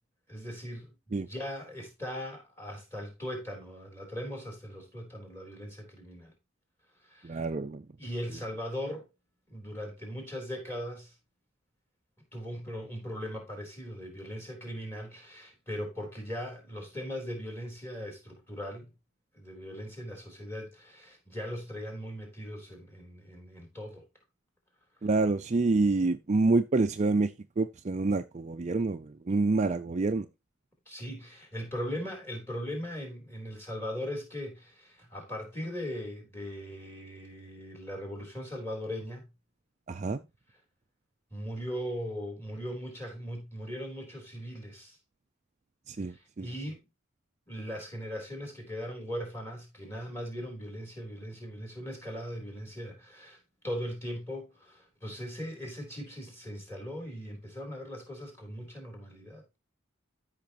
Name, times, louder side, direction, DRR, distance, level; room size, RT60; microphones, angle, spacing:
voice 1, 0.3-6.3 7.0-7.4 8.0-9.1 9.5-11.1 12.3-18.9 19.3-24.0 30.9-39.3 41.3-45.0 46.0-46.8 47.5-53.4 53.6-59.4, equal, 10° left, 3.6 m, -39 dB
voice 2, 7.2-7.8 25.0-27.3 27.6-30.3 39.9-40.2 45.9-46.5, right 3 dB, 30° right, 0.4 m, -27 dB
13.5 x 5.7 x 2.9 m
head